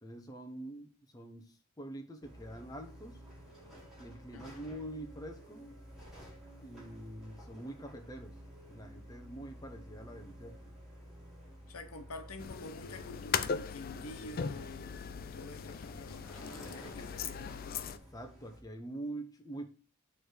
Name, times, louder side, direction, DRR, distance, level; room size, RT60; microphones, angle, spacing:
voice 1, 0.0-3.2 4.0-5.7 6.6-8.4 8.7-10.8 17.8-19.7, right 1 dB, 15° left, 0.8 m, -45 dB
sound 1, 2.2-18.6, equal, 5° right, 2.3 m, -53 dB
voice 2, 4.3-4.7 11.7-17.5, left 2 dB, 90° left, 1.0 m, -48 dB
sound 2, 12.4-18.0, left 6 dB, 45° left, 0.4 m, -39 dB
6.9 x 3.4 x 6.2 m
head